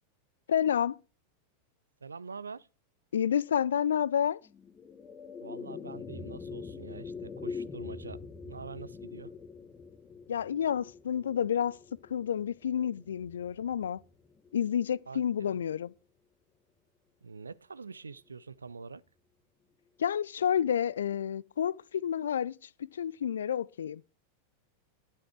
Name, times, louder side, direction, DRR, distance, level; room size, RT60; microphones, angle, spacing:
voice 1, 0.5-1.0 3.1-4.4 10.3-11.8 12.1-14.0 14.5-15.9 20.0-22.5 22.9-24.0, left 9 dB, 65° left, 0.4 m, -29 dB
voice 2, 2.0-2.7 5.4-8.2 8.5-9.3 15.1-15.6 17.2-19.0, right 5 dB, 75° right, 0.5 m, -45 dB
sound 1, 4.4-14.9, left 5 dB, 20° left, 1.2 m, -44 dB
12.0 x 7.5 x 4.8 m
figure-of-eight pair, 90°, 0 cm